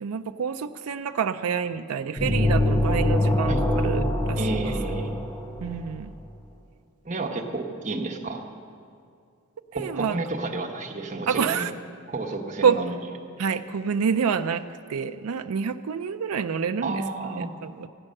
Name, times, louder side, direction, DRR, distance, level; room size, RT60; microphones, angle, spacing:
voice 1, 0.0-4.7 5.6-6.1 9.7-10.2 11.3-11.7 12.6-12.8 13.4-14.6 14.9-17.0 17.4-17.9, right 6 dB, 80° right, 8 dB, 0.4 m, -27 dB
sound 1, 2.2-6.0, left 1 dB, 15° left, 0.9 m, -24 dB
voice 2, 4.4-5.2 7.0-8.4 9.7-11.7 12.1-12.9 16.8-17.5, right 3 dB, 35° right, 0 dB, 1.2 m, -31 dB
15.0 x 9.8 x 6.5 m, 2.4 s
head